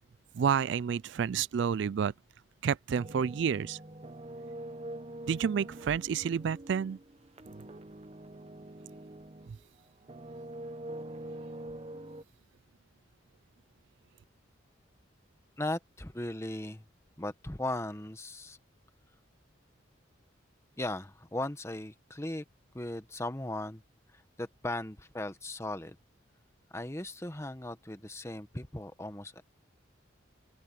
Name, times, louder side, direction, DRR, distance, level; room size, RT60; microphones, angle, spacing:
voice 1, 0.3-2.1 2.6-3.8 5.3-7.0, right 7 dB, 65° right, 0.3 m, -29 dB
sound 1, 2.9-9.6 10.0-12.2, right 1 dB, 30° right, 0.9 m, -44 dB
voice 2, 15.6-16.8 17.2-18.6 20.8-22.4 22.7-23.8 24.1-26.0 26.7-29.4, left 1 dB, 15° left, 1.2 m, -37 dB
open air
head